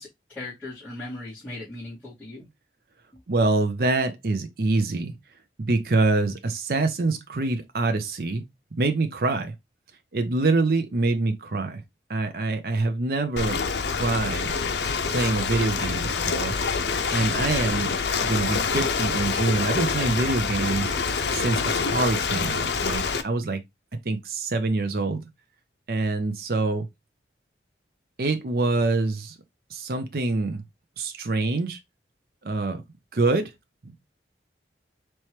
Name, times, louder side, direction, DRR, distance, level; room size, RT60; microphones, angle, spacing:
voice 1, 0.0-2.5, left 2 dB, 10° left, 2.4 m, -38 dB
voice 2, 3.3-5.1 5.6-8.4 8.8-9.5 10.1-11.8 12.1-14.5 15.1-16.5 17.1-18.0 18.3-20.9 21.3-23.6 24.1-25.2 25.9-26.9 28.2-29.3 29.7-30.6 31.0-31.8 32.4-32.8 33.1-33.5 33.8-34.0, right 3 dB, 55° right, 0.6 m, -25 dB
Ocean, 13.4-23.2, left 5 dB, 75° left, 0.6 m, -26 dB
4.3 x 3.0 x 3.0 m
head